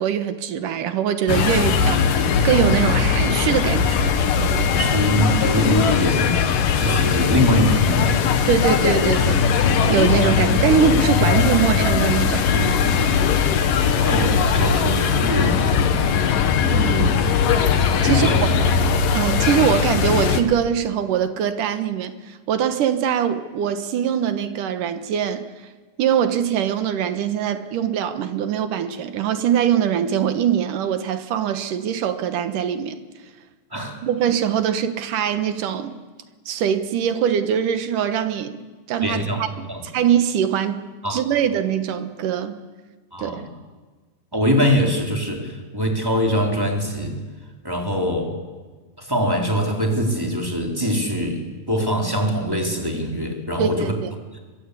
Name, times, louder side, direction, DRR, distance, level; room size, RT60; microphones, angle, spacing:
voice 1, 0.0-4.2 8.5-9.5 9.9-12.5 16.7-17.2 18.0-18.5 19.1-25.5 26.0-33.0 34.0-36.0 36.5-38.6 38.9-39.7 39.9-42.6 43.2-43.5 53.6-54.1, right 8 dB, 75° right, 10 dB, 2.9 m, -22 dB
sound 1, 1.3-20.4, left 6 dB, 80° left, 3.1 m, -19 dB
voice 2, 4.7-6.4 6.8-8.3 12.5-13.1 14.0-16.0 18.0-18.4 33.7-34.0 39.0-39.9 41.0-41.2 43.1-43.5 44.3-47.1 47.6-48.3 49.0-51.4 51.7-53.9, equal, 5° right, 1 dB, 3.5 m, -23 dB
23.0 x 23.0 x 8.4 m, 1.4 s
omnidirectional pair, 3.9 m